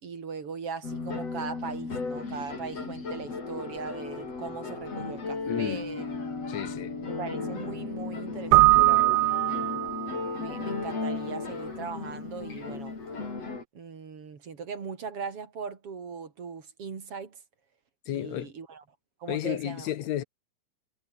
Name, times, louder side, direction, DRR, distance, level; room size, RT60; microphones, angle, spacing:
voice 1, 0.0-6.0 7.0-9.7 10.4-12.9 13.8-17.4 18.1-18.8 19.2-19.9, right 5 dB, 50° right, 3.5 m, -39 dB
sound 1, 0.8-13.6, left 4 dB, 55° left, 6.7 m, -35 dB
voice 2, 5.5-5.8 6.5-7.0 18.1-18.5 19.3-20.2, left 12 dB, 75° left, 2.3 m, -32 dB
Keyboard (musical), 8.5-10.3, right 21 dB, 90° right, 2.0 m, -21 dB
omnidirectional pair, 3.4 m